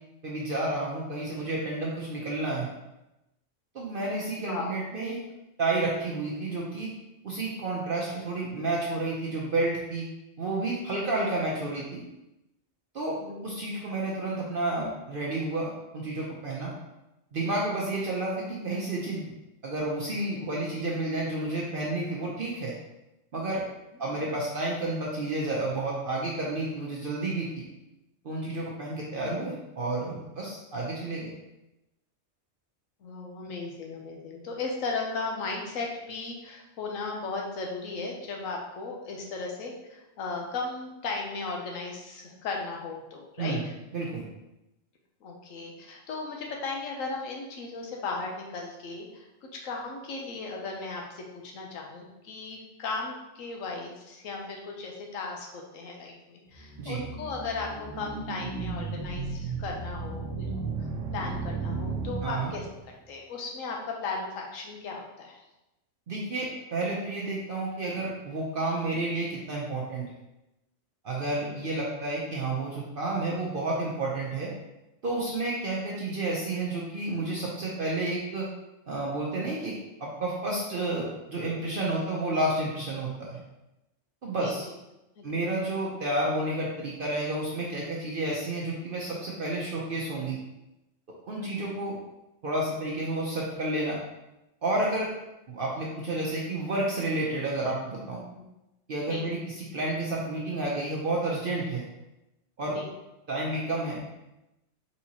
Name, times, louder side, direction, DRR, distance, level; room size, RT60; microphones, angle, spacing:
voice 1, 0.2-2.7 3.7-5.2 5.6-6.9 7.2-10.1 10.4-12.0 12.9-13.2 13.4-16.7 17.3-19.3 19.6-22.7 23.3-23.6 24.0-27.6 28.2-31.3 43.4-43.6 43.9-44.2 56.8-57.0 62.2-62.5 66.1-70.0 71.0-74.5 75.0-78.5 78.9-83.4 84.2-84.7 85.2-90.4 91.3-92.0 92.4-94.0 94.6-95.1 95.5-98.2 98.9-101.8 102.6-102.8 103.3-104.0, right 2 dB, 55° right, -3 dB, 0.7 m, -30 dB
voice 2, 33.0-43.7 45.2-49.3 49.6-60.7 61.1-62.7 63.1-65.4 71.3-71.6 84.4-84.6 85.2-85.4 91.4-91.7 99.1-99.3 102.7-102.9, left 3 dB, 85° left, 0 dB, 1.1 m, -36 dB
sound 1, 56.5-62.9, right 4 dB, 75° right, 1.0 m, -35 dB
4.2 x 3.6 x 2.8 m, 0.95 s
omnidirectional pair, 1.3 m